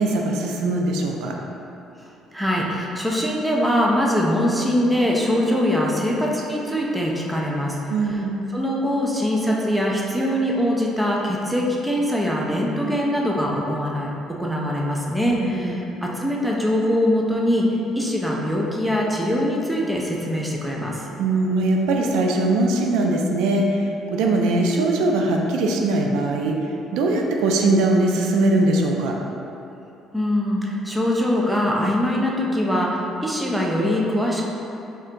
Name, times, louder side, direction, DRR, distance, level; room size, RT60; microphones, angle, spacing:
voice 1, 0.0-1.3 7.9-8.4 15.4-15.8 21.2-23.8 24.1-26.6 26.9-29.1, right 2 dB, 90° right, 1 dB, 0.3 m, -21 dB
voice 2, 2.3-7.8 8.5-14.1 14.4-17.7 18.0-21.0 30.1-34.5, equal, 5° right, -3 dB, 0.3 m, -22 dB
2.6 x 2.2 x 3.7 m, 2.8 s
cardioid pair, 155°, 0 cm